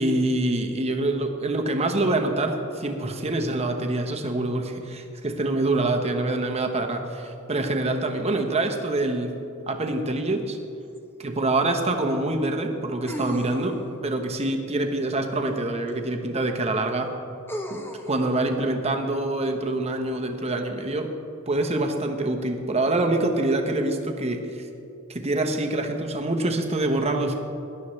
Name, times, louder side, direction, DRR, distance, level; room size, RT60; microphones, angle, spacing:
voice 1, 0.0-9.3 9.7-10.6 11.2-13.7 14.0-17.1 17.7-21.1 21.5-24.7 25.1-27.3, right 2 dB, 30° right, 4 dB, 1.0 m, -25 dB
sound 1, 11.0-11.1 13.1-14.0 15.9-16.0 17.5-18.2, equal, 10° left, 0.7 m, -34 dB
17.5 x 11.5 x 3.2 m, 2.7 s
head